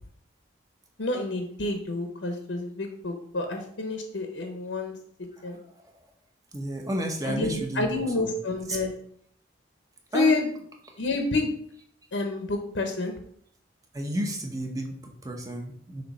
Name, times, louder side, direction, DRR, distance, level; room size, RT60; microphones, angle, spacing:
voice 1, 1.0-4.9 5.4-5.6 7.2-8.9 10.1-10.5 11.0-11.5 12.1-13.1, left 2 dB, 75° left, 4 dB, 0.8 m, -28 dB
voice 2, 6.5-8.3 8.7-8.8 10.1-10.3 13.9-16.0, right 1 dB, 20° right, 2 dB, 0.9 m, -32 dB
6.6 x 2.9 x 5.3 m, 0.65 s
head